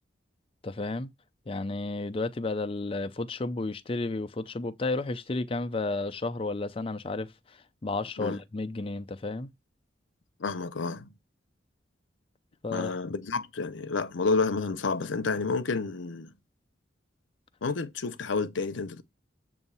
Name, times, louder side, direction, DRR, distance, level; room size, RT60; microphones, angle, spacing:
voice 1, 0.6-1.1 1.5-7.3 7.8-9.5 12.6-12.9, left 2 dB, 30° left, 0.5 m, -32 dB
voice 2, 10.4-11.1 12.7-16.3 17.6-19.0, left 4 dB, 80° left, 0.7 m, -30 dB
7.7 x 2.7 x 5.5 m
head